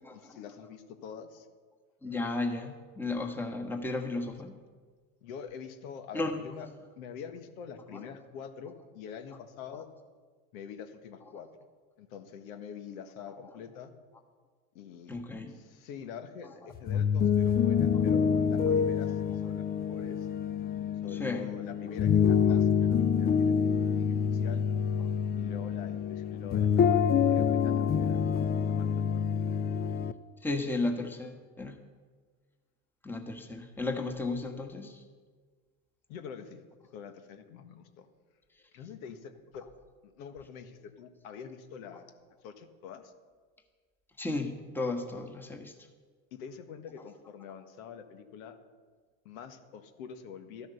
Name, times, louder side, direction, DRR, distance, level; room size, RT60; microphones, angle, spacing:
voice 1, 0.1-1.5 5.2-6.7 7.0-9.9 10.5-11.5 12.0-13.9 14.7-15.2 15.5-20.3 21.0-24.6 25.4-28.2 28.7-29.3 36.1-36.6 36.9-38.1 38.7-39.7 40.0-42.1 42.4-43.1 46.3-48.5 49.2-50.7, left 7 dB, 70° left, 8 dB, 1.7 m, -45 dB
voice 2, 2.0-4.6 6.1-6.4 15.1-15.6 21.1-21.5 22.5-22.6 30.4-31.8 33.0-35.0 44.2-45.7, left 2 dB, 5° left, 4 dB, 1.4 m, -34 dB
sound 1, 16.7-30.1, left 7 dB, 20° left, 0.5 m, -27 dB
13.0 x 10.5 x 6.9 m, 1.5 s
supercardioid pair, 110°, 43 cm